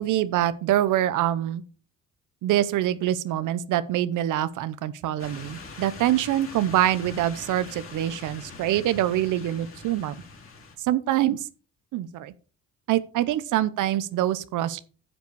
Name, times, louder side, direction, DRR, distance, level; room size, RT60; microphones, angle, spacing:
voice 1, 0.0-1.6 2.4-10.2 10.8-11.5 11.9-12.3 12.9-14.8, right 12 dB, 85° right, 0.9 m, -25 dB
sound 1, 5.2-10.7, left 3 dB, 45° left, 3.6 m, -43 dB
10.0 x 6.9 x 4.8 m
cardioid pair, 90°, 30 cm